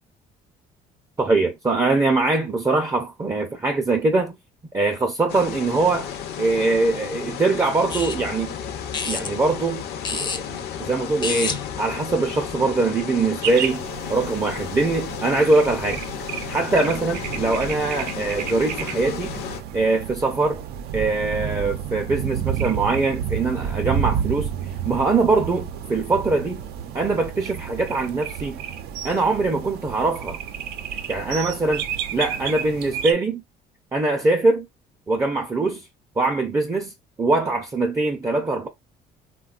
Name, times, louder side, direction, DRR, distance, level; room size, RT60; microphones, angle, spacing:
voice 1, 1.2-4.4 4.7-8.5 9.1-9.8 10.1-13.8 14.1-16.0 16.5-19.3 19.7-20.6 20.9-24.5 24.8-26.6 26.9-28.6 29.0-30.4 31.1-31.8 32.1-33.4 33.9-34.7 35.1-35.8 36.2-36.9 37.2-38.7, right 3 dB, 20° right, 0.5 m, -22 dB
sound 1, 5.3-19.6, left 9 dB, 75° left, 0.6 m, -33 dB
sound 2, 7.9-12.7, left 4 dB, 25° left, 0.5 m, -32 dB
sound 3, 13.4-33.1, right 9 dB, 70° right, 0.5 m, -31 dB
3.5 x 2.2 x 2.4 m
cardioid pair, 110°, 17 cm